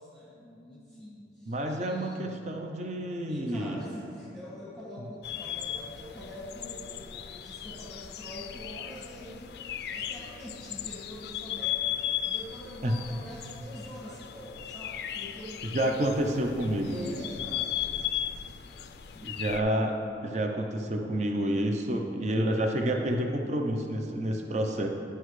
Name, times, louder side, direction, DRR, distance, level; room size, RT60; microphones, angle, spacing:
voice 1, 0.0-2.3 3.3-16.5 16.8-19.4, equal, 5° left, -8 dB, 1.4 m, -45 dB
voice 2, 1.5-3.8 12.8-13.0 15.7-17.2 19.2-19.9 20.2-24.9, right 1 dB, 40° right, 3 dB, 0.6 m, -29 dB
sound 1, 5.2-19.6, left 10 dB, 60° left, 0.3 m, -37 dB
12.0 x 5.6 x 3.2 m, 2.5 s
head